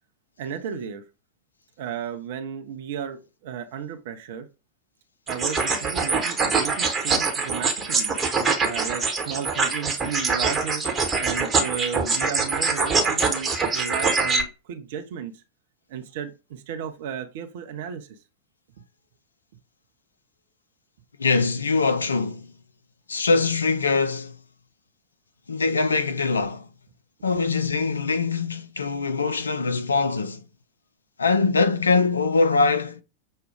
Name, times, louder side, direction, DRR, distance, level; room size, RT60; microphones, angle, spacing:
voice 1, 0.4-1.0 1.8-4.5 5.3-8.1 8.6-10.9 11.2-15.4 15.9-18.2, right 8 dB, 55° right, 0.6 m, -34 dB
sound 1, 5.3-14.4, right 4 dB, 20° right, 1.0 m, -24 dB
voice 2, 21.2-22.5 23.1-24.4 25.5-26.7 27.2-30.4 31.2-33.0, left 4 dB, 75° left, 0.4 m, -23 dB
6.3 x 2.2 x 3.4 m
figure-of-eight pair, 90°, 0 cm